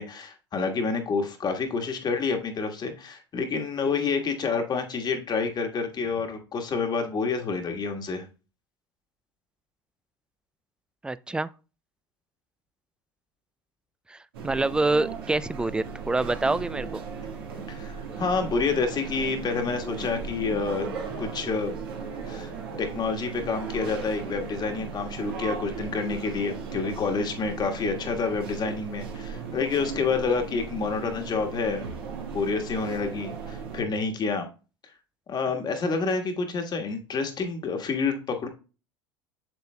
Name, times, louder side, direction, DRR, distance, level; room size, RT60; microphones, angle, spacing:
voice 1, 0.0-8.2 17.7-20.9 21.2-21.8 22.3-22.5 22.8-31.8 32.3-34.5 35.3-38.5, left 4 dB, 35° left, 1.4 m, -28 dB
voice 2, 11.0-11.5 14.1-17.0, right 2 dB, 5° right, 0.3 m, -26 dB
sound 1, 14.3-33.8, right 5 dB, 80° right, 1.6 m, -37 dB
7.9 x 6.8 x 2.2 m
hypercardioid pair, 75°, 12 cm